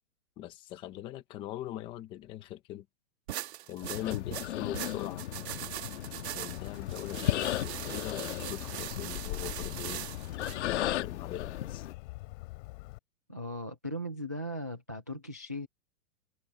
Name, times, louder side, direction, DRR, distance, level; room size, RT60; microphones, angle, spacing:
voice 1, 0.4-2.8 3.7-5.5 6.4-10.0 10.6-11.9, left 13 dB, 10° left, 0.7 m, -41 dB
sound 1, 3.3-10.6, right 14 dB, 50° right, 1.7 m, -41 dB
sound 2, 3.8-11.9, left 12 dB, 55° left, 1.5 m, -36 dB
Bird, 6.5-13.0, left 22 dB, 35° left, 3.6 m, -43 dB
voice 2, 13.3-15.7, equal, 15° right, 0.3 m, -38 dB
hypercardioid pair, 170°, 42 cm